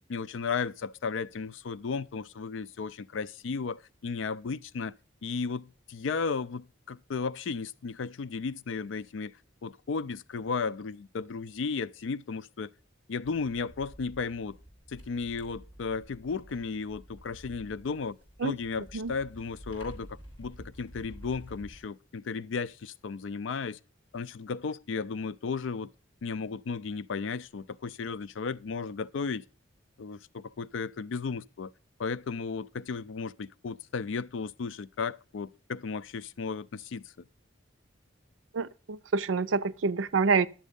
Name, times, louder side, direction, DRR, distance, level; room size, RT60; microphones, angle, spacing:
voice 1, 0.1-4.9 5.2-9.3 9.6-12.7 13.1-14.6 14.9-18.2 18.4-23.8 24.1-25.9 26.2-29.4 30.0-31.7 32.0-37.0, left 5 dB, 75° left, 0.4 m, -34 dB
sound 1, 13.2-21.9, equal, 15° left, 4.5 m, -50 dB
voice 2, 38.5-40.5, right 4 dB, 85° right, 0.5 m, -27 dB
11.0 x 7.4 x 5.2 m
head